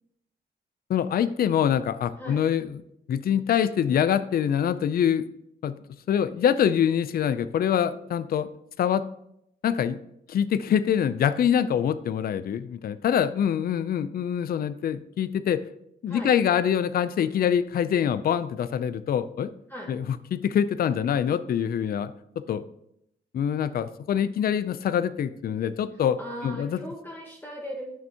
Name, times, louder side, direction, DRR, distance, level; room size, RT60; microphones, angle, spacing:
voice 1, 0.9-2.8 3.1-5.2 5.6-5.7 6.1-8.5 8.8-9.0 9.6-10.0 10.3-15.6 16.0-19.5 19.9-22.1 22.5-22.6 23.3-26.2 26.4-26.8, left 9 dB, 55° left, 14 dB, 0.4 m, -24 dB
voice 2, 26.2-27.9, equal, 10° left, -1 dB, 1.3 m, -38 dB
11.0 x 6.1 x 2.9 m, 0.76 s
cardioid pair, 110°, 18 cm